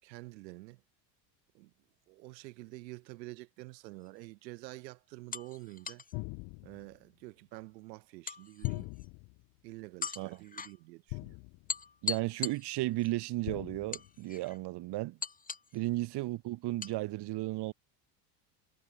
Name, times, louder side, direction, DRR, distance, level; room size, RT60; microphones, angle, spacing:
voice 1, 0.0-0.8 1.5-1.7 2.1-6.0 6.6-8.9 9.6-11.4, right 21 dB, 85° right, 4.2 m, -48 dB
sound 1, 4.0-4.2 5.3-6.1 8.3-9.1 10.0-10.8 11.7-13.1 13.9-14.6 15.2-15.8 16.8-17.0, left 5 dB, 15° left, 2.2 m, -40 dB
sound 2, 6.1-7.0 8.6-9.4 11.1-11.8 13.4-14.1, left 28 dB, 60° left, 1.3 m, -40 dB
voice 2, 12.0-15.2 15.7-17.7, right 18 dB, 55° right, 2.1 m, -34 dB
supercardioid pair, 115°, 49 cm